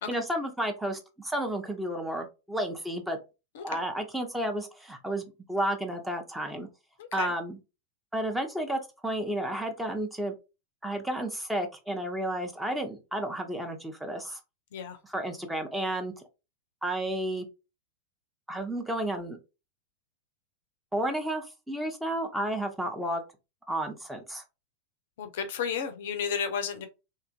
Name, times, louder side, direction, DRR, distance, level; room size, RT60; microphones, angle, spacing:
voice 1, 0.1-3.2 3.6-6.7 7.1-7.6 8.1-10.3 10.8-14.4 15.0-16.1 16.8-17.5 18.5-19.4 20.9-23.2 23.7-24.4, right 1 dB, 5° right, 0.5 m, -32 dB
voice 2, 7.0-7.3 14.7-15.0 25.2-26.9, left 7 dB, 55° left, 0.4 m, -32 dB
2.8 x 2.4 x 2.3 m
figure-of-eight pair, 90°, 0 cm